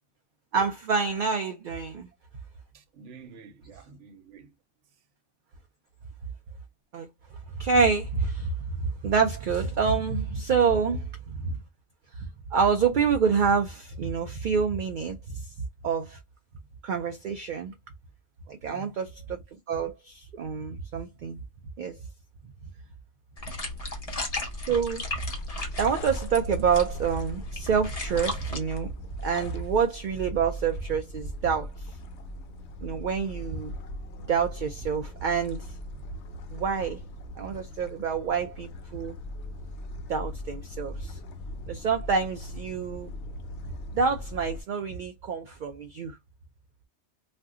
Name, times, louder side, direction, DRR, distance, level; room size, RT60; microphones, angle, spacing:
voice 1, 0.5-2.1 6.9-7.1 7.5-8.5 8.8-11.6 12.2-15.5 15.8-16.2 16.8-17.7 18.5-19.4 19.7-21.4 21.8-22.0 24.7-25.0 25.8-28.9 29.2-31.7 32.8-33.7 34.3-35.6 36.5-37.0 37.4-39.2 40.1-41.2 41.6-43.1 43.9-46.2, right 6 dB, 60° right, 0.5 m, -27 dB
voice 2, 2.7-4.5 18.4-18.9, right 4 dB, 80° right, 1.0 m, -49 dB
sound 1, 23.4-28.6, left 1 dB, 35° left, 0.8 m, -35 dB
sound 2, 25.3-44.6, left 1 dB, 70° left, 0.9 m, -40 dB
2.5 x 2.2 x 3.5 m
omnidirectional pair, 1.2 m